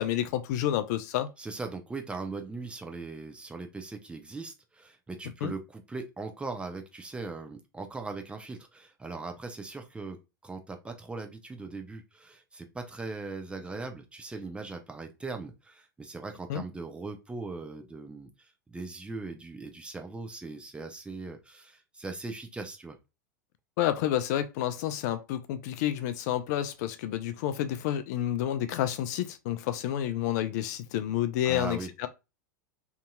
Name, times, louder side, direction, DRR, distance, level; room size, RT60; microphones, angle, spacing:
voice 1, 0.0-1.3 5.4-5.5 16.5-16.6 23.8-32.1, left 11 dB, 55° left, 0.4 m, -29 dB
voice 2, 1.4-23.0 31.4-31.9, right 3 dB, 10° right, 0.5 m, -39 dB
2.7 x 2.6 x 2.2 m
hypercardioid pair, 95°, 11 cm